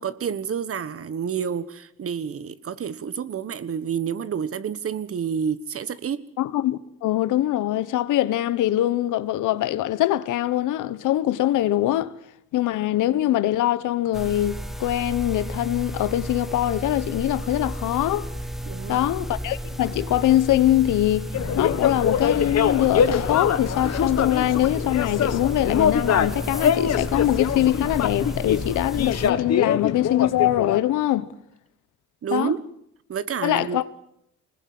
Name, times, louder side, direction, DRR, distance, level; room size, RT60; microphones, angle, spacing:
voice 1, 0.0-6.2 18.6-19.1 32.2-32.6 33.1-33.8, right 7 dB, 50° right, 1.3 m, -29 dB
voice 2, 6.4-12.1 12.5-18.3 18.9-21.3 21.5-31.3 32.3-32.5 33.4-33.9, left 14 dB, 85° left, 1.2 m, -23 dB
sound 1, 14.1-29.3, equal, ahead, 1.4 m, -33 dB
sound 2, 21.3-30.8, left 8 dB, 60° left, 1.6 m, -24 dB
24.5 x 20.5 x 7.8 m
cardioid pair, 90°, 30 cm